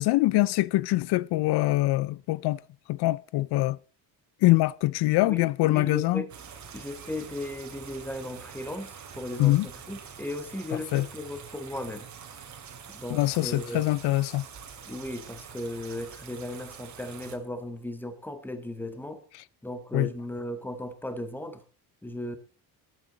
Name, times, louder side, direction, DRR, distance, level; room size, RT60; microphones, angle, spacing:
voice 1, 0.0-2.6 2.9-3.8 4.4-6.2 9.4-9.7 10.7-11.1 13.1-14.4 19.9-20.1, left 18 dB, 85° left, 0.6 m, -24 dB
voice 2, 5.2-6.3 6.7-12.1 12.9-13.9 14.9-19.2 19.6-21.6 22.0-22.4, left 1 dB, 5° left, 1.6 m, -36 dB
sound 1, 6.3-17.4, right 7 dB, 45° right, 2.6 m, -45 dB
19.5 x 9.1 x 4.0 m
cardioid pair, 150°, 39 cm